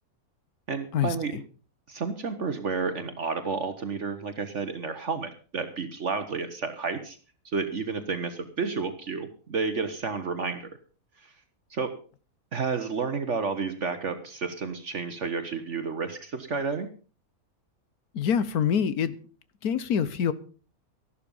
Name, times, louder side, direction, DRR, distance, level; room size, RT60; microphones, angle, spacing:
voice 1, 0.7-1.3 1.9-7.2 7.4-10.7 11.2-11.3 11.7-12.0 12.5-16.9, right 4 dB, 55° right, 9 dB, 1.5 m, -31 dB
voice 2, 18.1-19.2 19.6-20.3, left 8 dB, 85° left, 15 dB, 1.5 m, -25 dB
13.5 x 12.0 x 5.4 m, 0.38 s
omnidirectional pair, 1.6 m